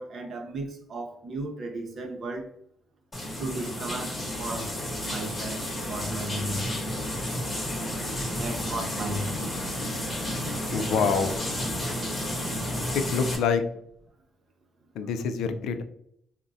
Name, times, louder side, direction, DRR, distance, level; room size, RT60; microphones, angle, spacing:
voice 1, 0.0-2.5 3.4-7.0 8.3-9.6, right 2 dB, 55° right, 0.7 m, -35 dB
sound 1, 3.1-13.4, equal, 25° left, 0.9 m, -31 dB
voice 2, 10.7-11.3 12.9-13.6 14.9-15.8, left 6 dB, 85° left, 0.3 m, -26 dB
3.5 x 2.1 x 2.6 m
cardioid pair, 90°, 0 cm